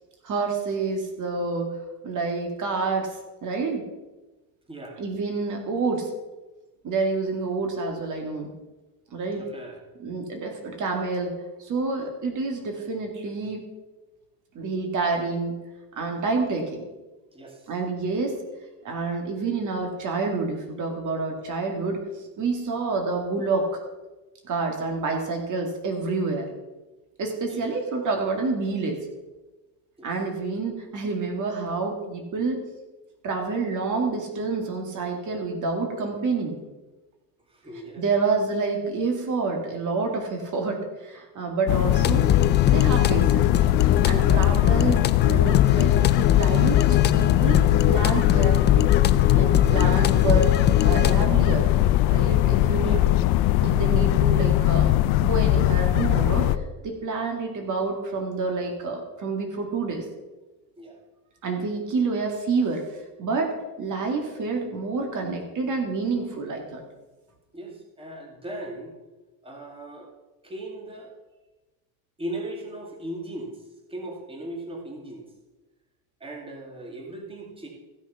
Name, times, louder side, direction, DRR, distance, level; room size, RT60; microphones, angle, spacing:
voice 1, 0.2-1.7 2.0-3.8 5.0-6.1 6.8-8.5 9.1-9.4 10.0-11.3 11.6-13.6 14.5-15.5 16.0-16.8 17.7-18.4 18.8-23.8 24.4-26.5 27.2-29.0 30.0-32.6 33.2-36.6 38.0-42.3 42.7-43.5 44.0-45.0 45.2-47.6 47.9-48.9 49.3-50.5 50.8-51.7 52.1-53.0 53.6-54.9 55.2-60.1 61.4-63.5 63.8-66.8, right 4 dB, 45° right, 2 dB, 2.2 m, -28 dB
voice 2, 4.7-5.0 9.4-9.8 17.3-17.6 27.5-27.6 30.0-30.1 37.5-38.0 52.8-53.1 60.8-61.0 67.5-68.9 69.4-70.1 70.4-71.1 72.2-73.6 73.9-75.2 76.2-77.7, right 1 dB, 15° right, 0 dB, 2.3 m, -38 dB
sound 1, 41.7-56.6, left 14 dB, 65° left, 0.7 m, -20 dB
sound 2, 41.9-51.3, left 9 dB, 25° left, 0.4 m, -25 dB
15.0 x 6.3 x 5.6 m, 1.1 s
cardioid pair, 120°, 42 cm